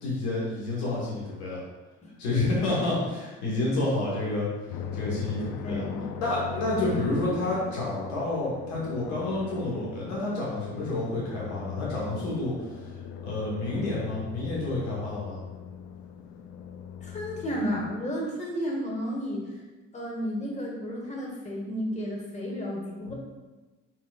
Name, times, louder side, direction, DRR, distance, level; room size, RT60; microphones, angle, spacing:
voice 1, 0.0-1.6 2.2-5.8 6.2-12.7 13.2-15.4 23.1-23.2, left 2 dB, 85° left, -6 dB, 1.4 m, -29 dB
sound 1, 4.7-17.9, left 7 dB, 70° left, 0.5 m, -39 dB
voice 2, 5.6-6.0 6.8-7.0 17.0-19.4 19.9-23.1, equal, 20° left, -2 dB, 1.3 m, -32 dB
4.2 x 3.9 x 2.4 m, 1.2 s
hypercardioid pair, 55°, 31 cm